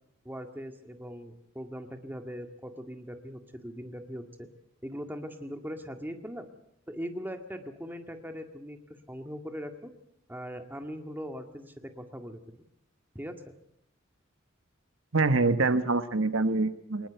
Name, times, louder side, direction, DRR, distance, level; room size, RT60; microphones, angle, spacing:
voice 1, 0.3-4.5 4.8-6.5 6.9-8.8 9.1-9.9 10.3-12.6 13.2-13.5, equal, 10° right, 6 dB, 1.8 m, -40 dB
voice 2, 15.1-17.1, right 3 dB, 80° right, 11 dB, 1.2 m, -25 dB
22.5 x 20.0 x 8.1 m, 0.75 s
head